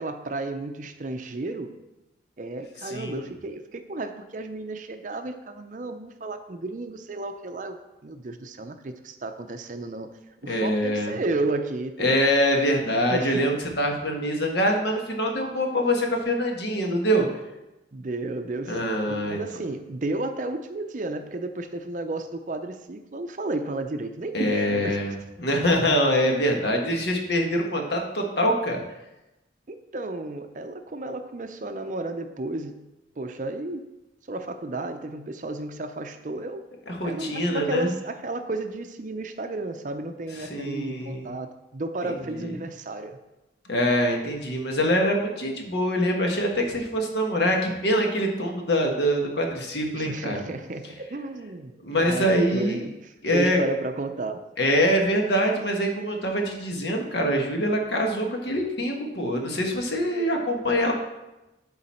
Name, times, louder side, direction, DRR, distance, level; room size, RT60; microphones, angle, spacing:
voice 1, 0.0-1.7 2.4-7.8 8.0-10.1 10.4-12.2 13.1-13.5 17.9-25.2 29.7-32.8 33.2-33.9 34.3-36.7 37.0-43.2 49.9-54.4, right 2 dB, 45° right, 7 dB, 0.5 m, -33 dB
voice 2, 2.8-3.2 10.5-11.1 12.0-17.2 18.7-19.4 24.3-25.1 25.4-28.8 36.9-37.9 40.4-41.3 42.3-42.5 43.7-50.4 51.8-52.8 53.2-53.6 54.6-60.9, equal, 65° left, 1 dB, 1.4 m, -24 dB
11.5 x 4.0 x 4.3 m, 0.98 s
head